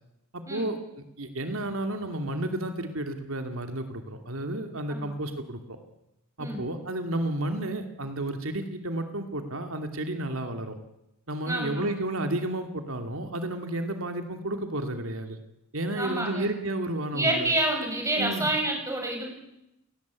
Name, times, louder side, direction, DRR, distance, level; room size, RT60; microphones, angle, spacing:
voice 1, 0.3-5.8 6.4-10.8 11.3-15.4 15.7-17.5 18.2-18.5, right 1 dB, 85° right, 6 dB, 2.6 m, -32 dB
voice 2, 11.5-11.9 16.0-16.5 17.1-19.3, right 1 dB, 15° right, 2 dB, 6.6 m, -28 dB
29.5 x 18.0 x 8.4 m, 0.88 s
head